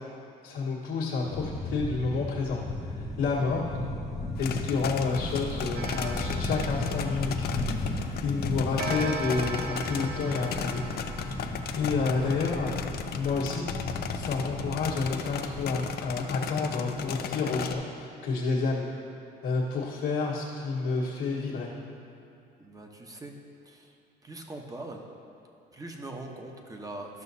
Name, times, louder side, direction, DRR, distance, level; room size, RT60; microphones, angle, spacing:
voice 1, 0.4-2.6 2.8-3.7 4.4-7.5 7.8-10.9 11.2-13.7 14.1-18.9 19.4-21.7, left 4 dB, 75° left, -9 dB, 1.5 m, -30 dB
sound 1, 1.2-16.3, left 2 dB, 20° left, 0.8 m, -35 dB
sound 2, 4.4-17.7, left 7 dB, 55° left, 0.5 m, -36 dB
Clock, 5.7-8.0 8.8-12.2, right 3 dB, 55° right, 0.9 m, -39 dB
voice 2, 22.6-23.3 23.6-23.9 24.2-25.0 25.7-27.2, right 2 dB, 20° right, 2 dB, 0.9 m, -42 dB
13.0 x 5.8 x 2.8 m, 2.6 s
cardioid pair, 95°, 20 cm